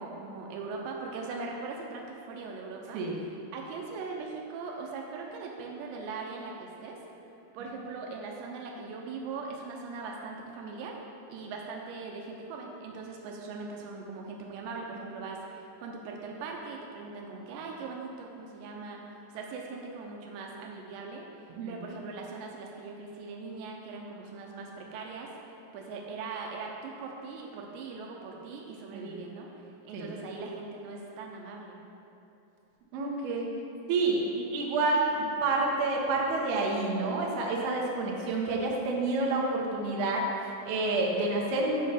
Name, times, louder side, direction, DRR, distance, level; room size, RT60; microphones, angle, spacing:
voice 1, 0.0-7.0 7.5-11.0 11.3-31.8, right 4 dB, 90° right, 0 dB, 3.0 m, -40 dB
voice 2, 32.9-33.5 33.9-35.1 35.4-41.9, right 3 dB, 70° right, -2 dB, 2.8 m, -29 dB
7.6 x 5.5 x 6.6 m, 2.8 s
omnidirectional pair, 4.9 m